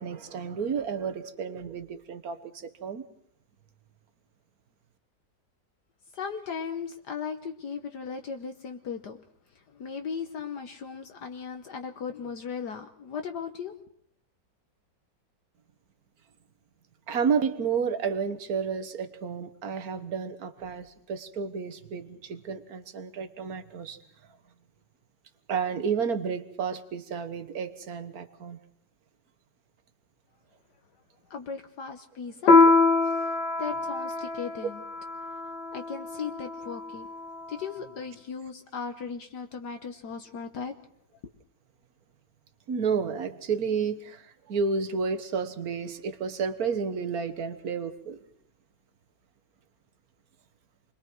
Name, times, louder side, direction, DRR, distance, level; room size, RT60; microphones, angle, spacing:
voice 1, 0.0-3.0 17.1-24.0 25.5-28.6 42.7-48.2, right 6 dB, 55° right, 10 dB, 1.8 m, -31 dB
voice 2, 6.1-9.2 9.7-13.7 31.3-32.7 33.6-34.8 35.7-37.1 37.5-40.7, left 6 dB, 65° left, 5 dB, 1.6 m, -37 dB
Piano, 32.5-37.4, left 3 dB, 85° left, 2.0 m, -24 dB
29.0 x 22.0 x 4.7 m, 0.66 s
omnidirectional pair, 2.0 m